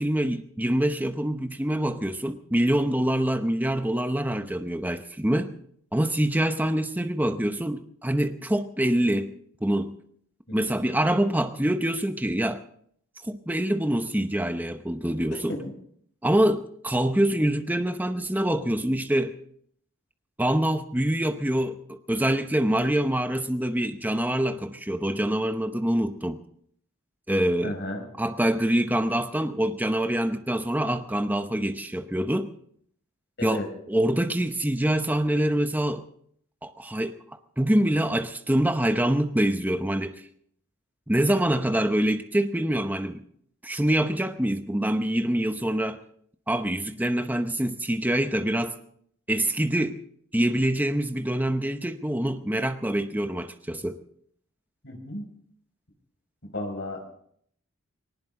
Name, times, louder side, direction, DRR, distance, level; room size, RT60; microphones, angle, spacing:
voice 1, 0.0-5.5 5.9-9.4 9.6-10.0 10.5-12.6 13.2-15.6 16.2-19.4 20.4-26.4 27.3-27.8 28.2-32.5 33.4-36.0 36.6-37.2 37.6-40.2 41.1-43.2 43.6-46.0 46.5-48.8 49.3-50.0 50.3-54.0, right 1 dB, 10° right, 0.8 m, -25 dB
voice 2, 27.6-28.0 33.4-33.7 54.8-55.2 56.5-57.0, left 1 dB, 55° left, 5.6 m, -33 dB
20.5 x 19.0 x 3.8 m
head